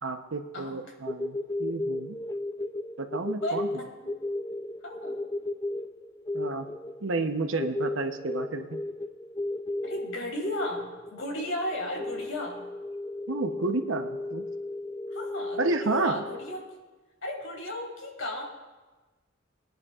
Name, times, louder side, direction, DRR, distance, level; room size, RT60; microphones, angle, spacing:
voice 1, 0.0-2.2 3.0-3.8 6.3-6.7 7.0-8.8 13.3-14.4 15.6-16.2, right 3 dB, 70° right, 7 dB, 0.8 m, -31 dB
sound 1, 1.1-16.7, left 2 dB, 15° left, 0.3 m, -34 dB
voice 2, 3.4-4.2 4.8-5.2 9.8-12.6 15.1-16.6 17.2-18.4, left 1 dB, 70° left, 0 dB, 2.5 m, -35 dB
21.5 x 10.5 x 2.4 m, 1.2 s
head